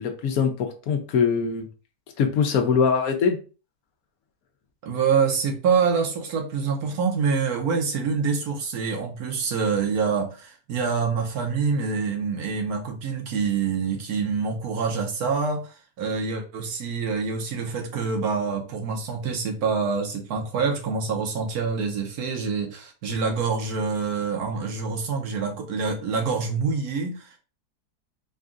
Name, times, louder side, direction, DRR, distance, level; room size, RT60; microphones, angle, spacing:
voice 1, 0.0-1.7 2.2-3.4, left 6 dB, 70° left, 5 dB, 1.1 m, -22 dB
voice 2, 4.8-27.4, right 5 dB, 80° right, 3 dB, 1.4 m, -26 dB
4.1 x 2.4 x 3.7 m, 0.34 s
omnidirectional pair, 1.6 m